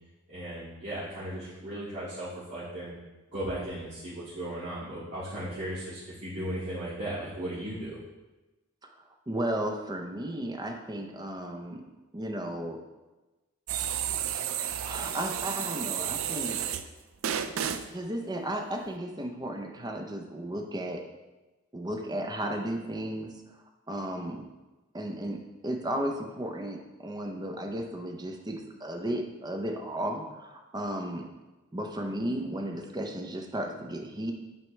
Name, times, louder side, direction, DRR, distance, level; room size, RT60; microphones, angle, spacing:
voice 1, 0.3-2.9 3.3-8.0, right 1 dB, 50° right, -13 dB, 2.2 m, -36 dB
voice 2, 8.9-11.8 12.1-12.8 14.8-16.6 17.9-21.0 21.7-23.3 23.9-24.4 24.9-31.3 31.7-34.3, right 1 dB, 20° right, 3 dB, 0.6 m, -34 dB
sound 1, 13.7-16.9 17.2-17.9, right 9 dB, 65° right, 0.4 m, -32 dB
9.3 x 4.5 x 3.2 m, 1.1 s
head